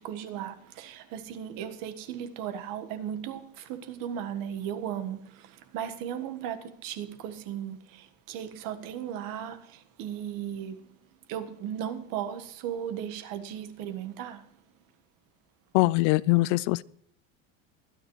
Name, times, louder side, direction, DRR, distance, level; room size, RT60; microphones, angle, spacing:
voice 1, 0.0-10.9 11.3-14.6, right 9 dB, 65° right, 1.6 m, -36 dB
voice 2, 15.7-16.8, left 21 dB, 75° left, 0.5 m, -22 dB
23.0 x 9.9 x 3.2 m
supercardioid pair, 120°, 36 cm